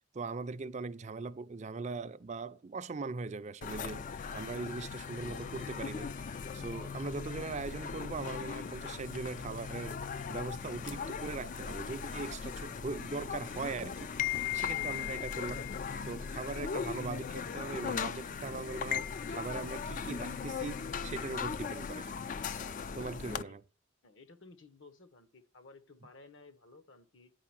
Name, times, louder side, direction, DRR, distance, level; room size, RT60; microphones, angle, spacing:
voice 1, 0.1-4.1 4.3-6.1 6.5-10.0 10.3-14.1 14.5-15.7 16.0-22.1 22.9-23.6, right 4 dB, 35° right, 0.4 m, -40 dB
sound 1, 3.6-23.4, left 6 dB, 40° left, 0.3 m, -38 dB
voice 2, 24.0-27.3, left 3 dB, 65° left, 1.1 m, -56 dB
9.4 x 4.9 x 5.9 m
head